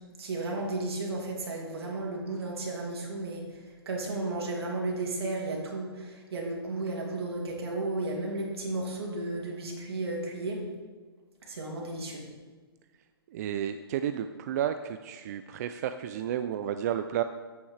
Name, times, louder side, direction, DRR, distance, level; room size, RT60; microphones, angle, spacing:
voice 1, 0.2-10.6 11.4-12.2, right 2 dB, 75° right, -1 dB, 2.6 m, -34 dB
voice 2, 13.3-17.2, right 10 dB, 40° right, 10 dB, 0.4 m, -32 dB
9.3 x 8.8 x 3.3 m, 1.4 s
hypercardioid pair, 140°, 13 cm